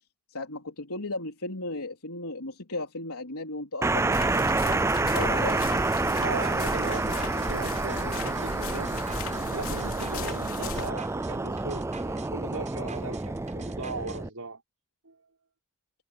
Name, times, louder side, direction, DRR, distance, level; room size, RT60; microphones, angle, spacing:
voice 1, 0.3-5.7, left 2 dB, 90° left, 3.8 m, -36 dB
sound 1, 3.8-14.3, right 2 dB, 10° right, 0.4 m, -28 dB
sound 2, 4.1-10.9, left 3 dB, 65° left, 3.4 m, -37 dB
voice 2, 6.2-9.1 9.5-14.6 15.0-15.2, right 3 dB, 80° right, 5.5 m, -38 dB
sound 3, 6.8-14.2, right 6 dB, 35° right, 7.7 m, -49 dB
head